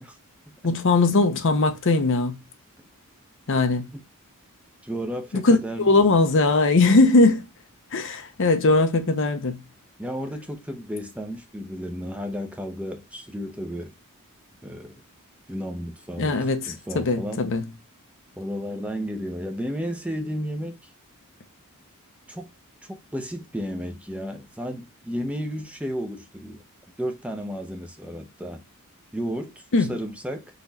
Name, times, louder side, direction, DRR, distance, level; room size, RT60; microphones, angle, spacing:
voice 1, 0.6-2.4 3.5-3.9 5.3-7.4 7.9-9.6 16.2-17.6 29.7-29.9, left 3 dB, 60° left, 0.7 m, -20 dB
voice 2, 4.8-6.2 10.0-13.9 14.6-14.9 15.5-16.4 16.7-17.4 18.4-20.9 22.3-22.5 22.8-26.6 27.0-28.6 29.1-30.4, equal, 5° right, 0.6 m, -33 dB
4.1 x 3.0 x 3.9 m
head